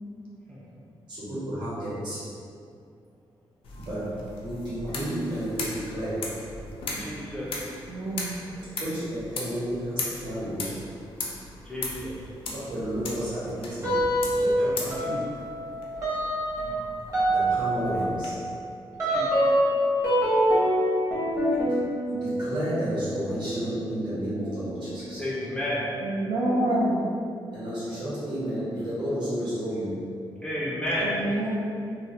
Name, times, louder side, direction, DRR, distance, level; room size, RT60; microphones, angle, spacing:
voice 1, 1.1-2.2 3.7-4.1 4.4-6.2 7.8-7.9 8.8-10.7 12.4-14.1 14.3-15.3 17.1-18.3 22.1-25.2 27.5-30.0 31.1-31.5, equal, 55° right, -9 dB, 1.0 m, -32 dB
sound 1, 3.6-18.3, left 3 dB, 80° left, 0.4 m, -38 dB
voice 2, 7.0-7.5 11.7-12.1 14.6-14.8 16.5-16.8 19.1-19.3 25.2-25.9 30.4-31.1, left 1 dB, 10° left, -7 dB, 0.4 m, -31 dB
voice 3, 7.9-8.4 26.0-27.1 31.0-31.5, right 1 dB, 85° right, -6 dB, 0.4 m, -27 dB
sound 2, 13.8-14.6 14.9-25.2, equal, 35° right, 0.8 m, -26 dB
2.3 x 2.0 x 2.8 m, 2.4 s
wide cardioid pair, 170°, 9 cm